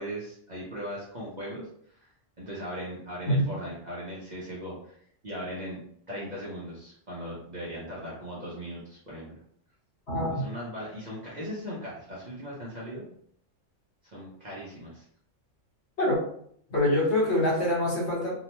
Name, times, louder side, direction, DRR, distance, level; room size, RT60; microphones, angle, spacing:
voice 1, 0.0-2.1 2.4-5.0 5.2-5.8 6.1-9.4 10.3-13.1 14.0-15.0, equal, 45° right, -6 dB, 0.7 m, -38 dB
voice 2, 10.1-10.5 16.0-16.2 16.7-18.3, left 1 dB, 60° left, -5 dB, 1.3 m, -25 dB
2.7 x 2.1 x 2.9 m, 0.65 s
omnidirectional pair, 1.3 m